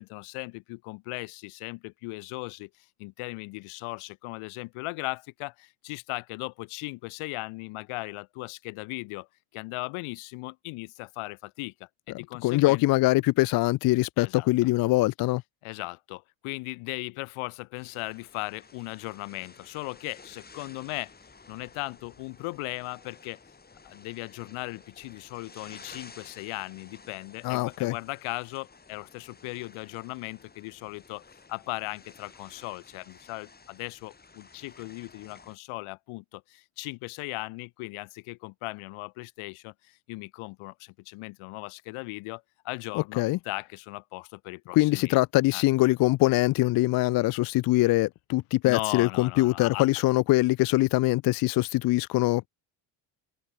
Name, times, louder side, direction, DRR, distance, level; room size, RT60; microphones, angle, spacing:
voice 1, 0.0-9.3 9.5-12.8 14.2-14.7 15.6-21.1 21.5-23.4 23.8-31.2 31.5-45.2 45.5-45.6 48.7-49.9, left 25 dB, 80° left, 1.4 m, -38 dB
voice 2, 12.4-15.4 27.4-27.9 42.9-43.4 44.7-52.5, left 19 dB, 50° left, 0.5 m, -23 dB
sound 1, 17.8-35.6, left 4 dB, 20° left, 6.6 m, -53 dB
cardioid pair, 135°, 49 cm